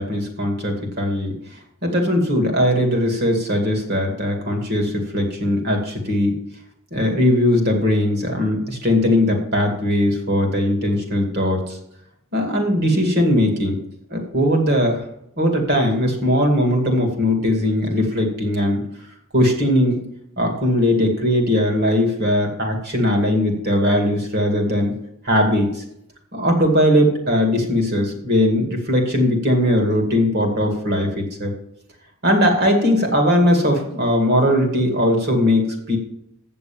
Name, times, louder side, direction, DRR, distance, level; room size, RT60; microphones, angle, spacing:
voice 1, 0.0-1.4 1.8-6.4 6.9-11.8 12.3-13.8 14.1-15.0 15.4-18.8 19.3-20.0 20.4-25.0 25.2-25.8 26.3-31.5 32.2-36.0, left 1 dB, 50° right, 3 dB, 2.3 m, -19 dB
8.2 x 7.0 x 7.1 m, 0.76 s
head